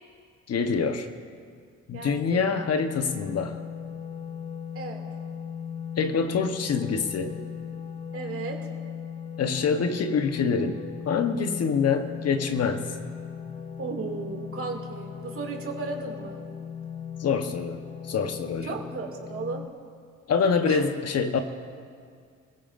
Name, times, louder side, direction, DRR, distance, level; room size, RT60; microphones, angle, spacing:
voice 1, 0.5-1.1 1.9-3.6 6.0-7.4 9.4-10.8 11.1-12.9 17.2-18.8 20.3-21.4, left 5 dB, 55° left, 7 dB, 1.0 m, -26 dB
voice 2, 1.9-2.4 4.7-5.0 8.1-8.7 13.8-16.4 18.6-19.6 20.6-20.8, right 4 dB, 45° right, 1 dB, 2.4 m, -35 dB
sound 1, 2.0-19.7, left 7 dB, 20° left, 0.6 m, -38 dB
25.5 x 16.5 x 2.6 m, 2.1 s
cardioid pair, 90°, 30 cm